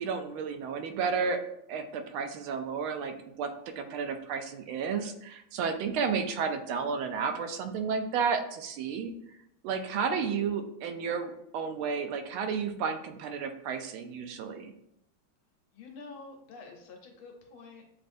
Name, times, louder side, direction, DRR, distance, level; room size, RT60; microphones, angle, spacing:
voice 1, 0.0-1.4 1.7-9.1 9.6-14.7, right 6 dB, 80° right, 7 dB, 1.4 m, -32 dB
voice 2, 15.7-18.0, left 3 dB, 80° left, 2 dB, 1.7 m, -48 dB
7.4 x 2.5 x 2.5 m, 0.77 s
omnidirectional pair, 2.3 m